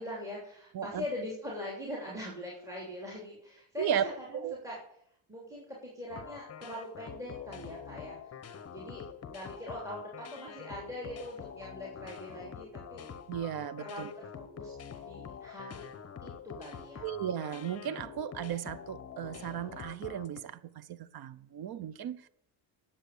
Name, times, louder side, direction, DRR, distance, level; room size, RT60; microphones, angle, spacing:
voice 1, 0.0-4.8 5.3-8.3 8.7-9.0 9.3-13.1 13.8-14.7 15.0-15.9 16.2-17.1, left 1 dB, 5° right, 3.1 m, -42 dB
voice 2, 0.7-1.0 3.8-4.1 4.4-4.6 13.3-14.1 17.0-22.2, right 9 dB, 50° right, 0.8 m, -35 dB
sound 1, 6.1-20.4, left 7 dB, 30° left, 0.9 m, -46 dB
10.0 x 7.6 x 6.6 m
cardioid pair, 115°, 49 cm